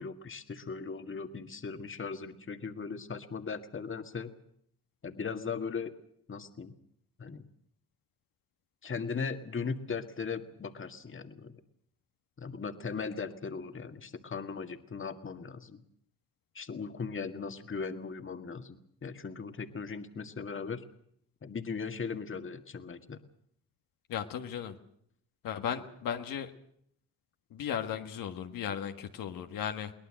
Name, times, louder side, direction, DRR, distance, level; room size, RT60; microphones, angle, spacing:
voice 1, 0.0-4.3 5.0-5.9 6.3-6.7 7.2-7.5 8.8-11.6 12.4-15.8 16.5-20.8 21.4-23.2, left 5 dB, 35° left, 7 dB, 2.0 m, -38 dB
voice 2, 24.1-24.8 25.4-26.5 27.5-29.9, left 8 dB, 75° left, 5 dB, 1.7 m, -36 dB
22.5 x 18.5 x 7.7 m, 0.67 s
supercardioid pair, 70°, 34 cm